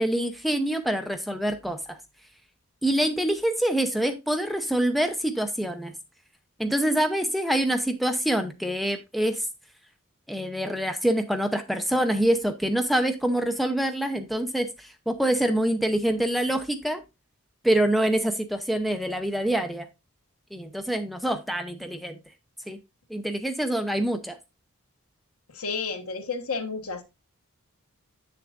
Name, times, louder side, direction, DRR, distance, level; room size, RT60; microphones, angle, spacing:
voice 1, 0.0-2.0 2.8-5.9 6.6-9.5 10.3-17.0 17.6-19.9 20.5-22.2 22.7-22.8 23.1-24.4, right 1 dB, ahead, 0.6 m, -25 dB
voice 2, 25.5-27.0, left 4 dB, 85° left, 1.2 m, -31 dB
8.2 x 6.7 x 2.5 m
head